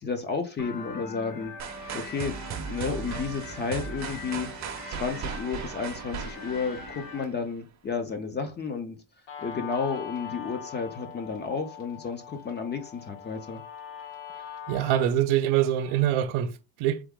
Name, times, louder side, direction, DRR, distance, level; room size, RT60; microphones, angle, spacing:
voice 1, 0.0-1.5 1.9-4.5 4.9-9.0 9.4-13.6, left 5 dB, 25° left, 0.4 m, -32 dB
sound 1, 0.6-7.2, left 3 dB, 45° left, 1.1 m, -42 dB
sound 2, 1.6-7.5, right 7 dB, 35° right, 0.6 m, -37 dB
Guitar, 9.3-16.3, left 8 dB, 90° left, 2.2 m, -42 dB
voice 2, 14.7-17.0, right 11 dB, 90° right, 0.7 m, -24 dB
4.0 x 3.5 x 3.5 m
cardioid pair, 170°, 47 cm